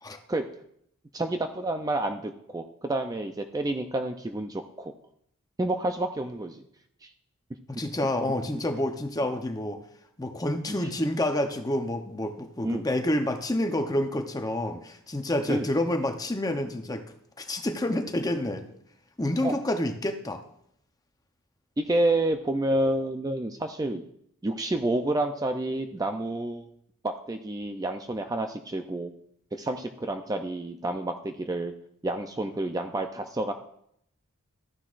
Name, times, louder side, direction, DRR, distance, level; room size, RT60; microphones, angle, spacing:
voice 1, 1.1-4.9 5.6-6.6 7.0-7.1 10.7-10.9 12.6-12.8 15.5-15.7 19.4-19.5 21.8-24.0 24.4-26.7 27.0-29.1 29.5-31.7 32.0-33.5, right 1 dB, 15° right, 6 dB, 0.4 m, -29 dB
voice 2, 7.7-9.8 10.2-17.0 17.4-18.6 19.2-20.4, left 1 dB, 15° left, 6 dB, 0.7 m, -28 dB
13.5 x 9.9 x 2.5 m, 0.71 s
head